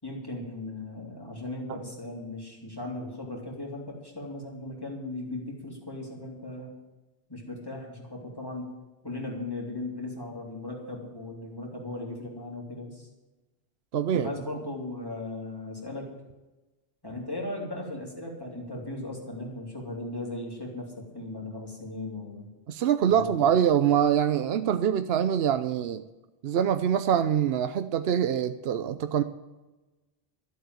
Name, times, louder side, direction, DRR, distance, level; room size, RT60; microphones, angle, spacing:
voice 1, 0.0-6.7 7.3-8.7 9.0-13.1 14.1-16.1 17.0-22.5 23.0-23.5, left 2 dB, 20° left, -2 dB, 3.4 m, -37 dB
voice 2, 13.9-14.3 22.7-26.0 26.4-29.2, right 9 dB, 75° right, 10 dB, 0.9 m, -24 dB
13.0 x 7.9 x 9.5 m, 1.1 s
omnidirectional pair, 1.0 m